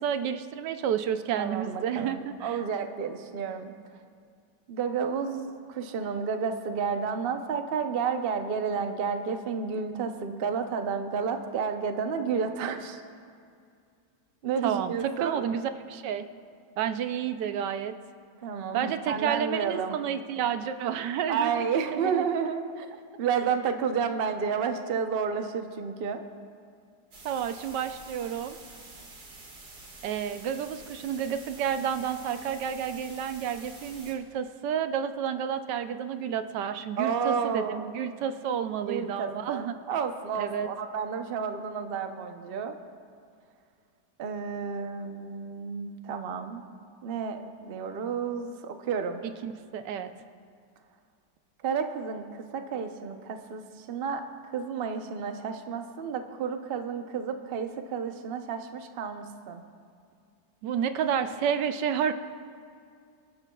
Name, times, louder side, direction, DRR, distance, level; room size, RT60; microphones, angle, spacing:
voice 1, 0.0-2.6 14.6-16.3 16.8-18.0 18.7-22.2 27.2-28.6 30.0-39.7 40.3-40.7 49.2-50.1 60.6-62.1, right 8 dB, 85° right, 9 dB, 1.3 m, -30 dB
voice 2, 1.4-3.7 4.7-13.0 14.4-15.4 18.4-20.0 21.3-22.9 23.2-26.2 37.0-37.8 38.8-42.7 44.2-46.6 47.0-49.2 51.6-59.6, right 6 dB, 50° right, 6 dB, 0.7 m, -31 dB
sound 1, 27.1-34.1, right 2 dB, 65° right, 2.5 m, -48 dB
25.5 x 11.5 x 2.3 m, 2.3 s
omnidirectional pair, 1.8 m